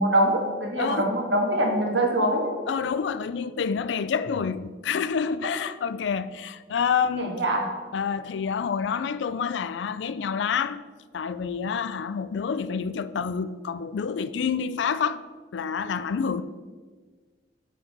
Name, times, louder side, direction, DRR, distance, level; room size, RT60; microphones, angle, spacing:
voice 1, 0.0-2.5 7.2-7.7, right 1 dB, 75° right, 1.6 m, -23 dB
voice 2, 0.8-1.1 2.7-7.4 7.9-10.8 11.1-15.2 15.5-16.4, left 6 dB, 75° left, 0.4 m, -28 dB
8.5 x 4.6 x 5.3 m
head